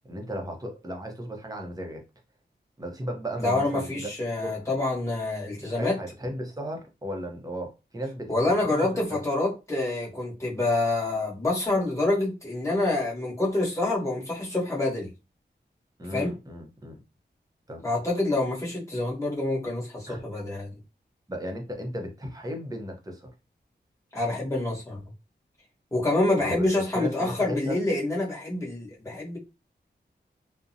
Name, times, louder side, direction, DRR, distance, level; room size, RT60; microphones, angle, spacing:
voice 1, 0.0-2.0 2.8-4.1 4.4-4.6 5.6-8.3 8.7-9.2 16.0-17.0 17.7-17.8 20.1-20.2 21.3-23.3 26.4-26.7 26.9-27.8, equal, 20° right, 0.6 m, -35 dB
voice 2, 3.4-6.0 8.3-15.1 16.1-16.3 17.8-20.8 24.1-25.0 25.9-29.4, left 2 dB, 15° left, 1.1 m, -27 dB
2.5 x 2.0 x 2.6 m
wide cardioid pair, 90°, 18 cm